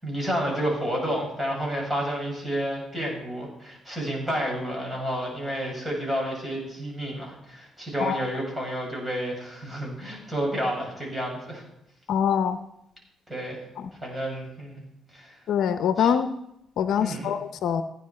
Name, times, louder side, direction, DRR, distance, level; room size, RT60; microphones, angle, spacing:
voice 1, 0.0-11.6 13.3-13.6 14.0-14.8 15.1-15.4 16.0-16.1 17.0-17.3, equal, 15° right, -2 dB, 6.4 m, -30 dB
voice 2, 12.1-12.6 15.5-16.3 16.8-17.8, left 8 dB, 75° left, 10 dB, 0.7 m, -24 dB
16.0 x 9.9 x 4.3 m, 0.83 s
cardioid pair, 90°, 0 cm